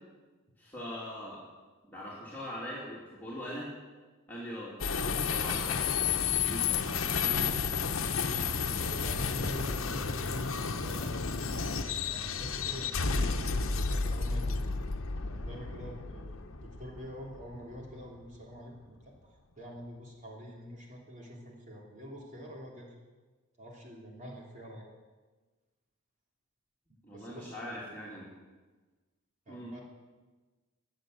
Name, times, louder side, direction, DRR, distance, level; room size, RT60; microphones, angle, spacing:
voice 1, 0.6-1.4 1.8-3.7 4.3-4.7 5.0-5.8 6.4-6.8 7.1-7.7 9.4-9.5 11.9-12.1 27.0-28.3 29.5-29.7, equal, 10° left, -7 dB, 3.1 m, -42 dB
sound 1, 4.8-18.2, left 5 dB, 70° left, 1.0 m, -32 dB
voice 2, 8.7-11.4 12.1-14.7 15.2-23.0 23.6-24.9 27.1-27.5 29.5-29.8, equal, 35° right, -2 dB, 3.1 m, -46 dB
22.0 x 7.7 x 7.9 m, 1.3 s
head